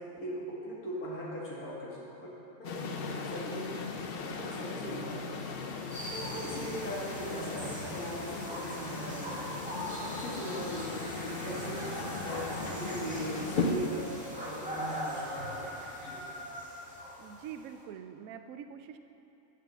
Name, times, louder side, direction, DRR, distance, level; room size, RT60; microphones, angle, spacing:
voice 1, 0.0-2.3 2.6-4.0 4.2-5.3 6.1-14.1 14.4-15.6 16.0-16.2, equal, 80° left, -7 dB, 2.6 m, -40 dB
sound 1, 2.6-13.7, left 3 dB, 55° left, 0.7 m, -38 dB
sound 2, 5.9-17.8, equal, 5° right, 1.8 m, -41 dB
voice 2, 17.2-19.0, right 8 dB, 75° right, 8 dB, 1.0 m, -45 dB
9.2 x 6.6 x 6.8 m, 2.8 s
omnidirectional pair, 1.5 m